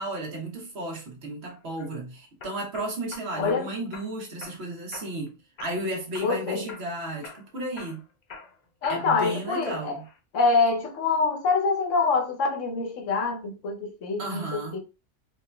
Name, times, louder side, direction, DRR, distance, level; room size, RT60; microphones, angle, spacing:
voice 1, 0.0-8.0 8.9-10.0 14.2-14.8, right 1 dB, 60° right, 1.2 m, -34 dB
sound 1, 1.5-1.9 2.4-3.6 3.9-4.6 4.9-5.3 5.6-6.4 6.7-6.9 7.2-9.3 9.7-10.2, left 5 dB, 50° left, 0.5 m, -44 dB
voice 2, 3.4-3.7 6.2-6.6 8.8-10.0 10.3-14.8, left 4 dB, 80° left, 1.1 m, -25 dB
3.9 x 2.8 x 2.2 m
omnidirectional pair, 1.3 m